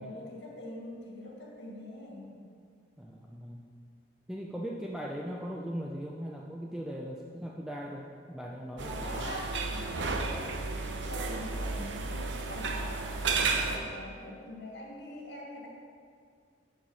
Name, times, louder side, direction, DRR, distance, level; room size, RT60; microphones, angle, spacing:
voice 1, 0.0-2.4 8.8-10.5 10.8-13.2 13.5-15.7, left 1 dB, 75° left, -3 dB, 1.9 m, -43 dB
voice 2, 3.0-3.6 4.3-9.3, equal, 5° right, -2 dB, 0.5 m, -39 dB
sound 1, 8.8-13.8, right 4 dB, 90° right, 0.7 m, -32 dB
9.2 x 4.5 x 6.3 m, 2.2 s
head